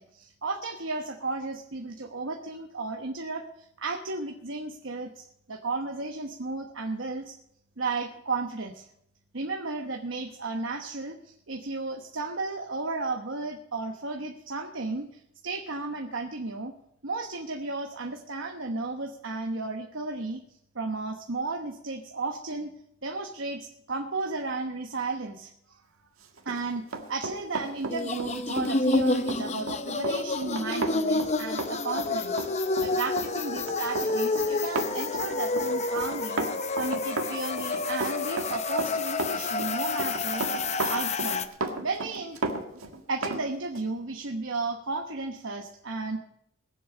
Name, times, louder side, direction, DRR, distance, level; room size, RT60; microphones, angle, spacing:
voice 1, 0.0-7.3 7.8-8.9 9.3-16.7 17.0-20.4 20.7-22.7 23.0-25.8 26.4-26.8 27.1-32.4 32.8-36.4 36.7-41.5 41.8-42.4 42.7-46.2, right 3 dB, 65° right, 4 dB, 1.1 m, -34 dB
Run, 26.4-43.4 43.8-43.9, right 2 dB, 80° right, 1.8 m, -34 dB
sound 1, 27.9-41.5, left 3 dB, 30° left, 0.6 m, -29 dB
20.5 x 7.8 x 5.3 m, 0.74 s
head